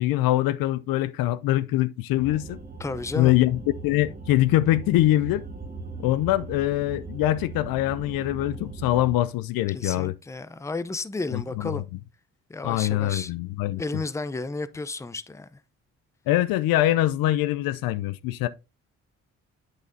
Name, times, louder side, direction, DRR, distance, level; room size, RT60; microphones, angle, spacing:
voice 1, 0.0-2.6 3.2-5.5 6.0-10.1 11.3-11.8 12.6-13.8 16.3-18.5, left 15 dB, 70° left, 0.5 m, -23 dB
sound 1, 2.1-9.2, right 3 dB, 25° right, 1.2 m, -39 dB
voice 2, 2.8-3.4 9.7-11.8 12.5-13.3 13.8-15.6, left 3 dB, 10° left, 0.5 m, -32 dB
8.3 x 6.4 x 2.6 m
hypercardioid pair, 50°, 37 cm